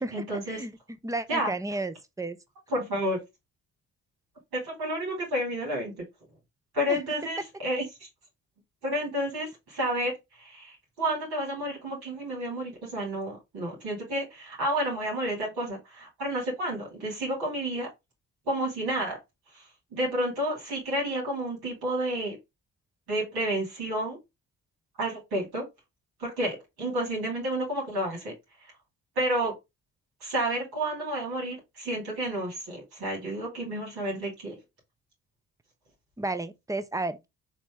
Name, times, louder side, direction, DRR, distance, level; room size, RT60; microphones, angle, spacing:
voice 1, 0.1-0.6 1.3-1.5 2.7-3.2 4.5-5.9 6.7-8.1 8.8-17.9 18.5-19.2 19.5-19.6 19.9-22.4 23.1-24.2 25.0-25.7 26.2-28.3 29.2-29.5 30.2-34.6, right 1 dB, 65° right, 2.7 m, -30 dB
voice 2, 1.0-2.4 6.9-7.0 36.2-37.3, right 2 dB, 10° right, 0.6 m, -32 dB
4.0 x 3.0 x 3.6 m
hypercardioid pair, 45°, 40 cm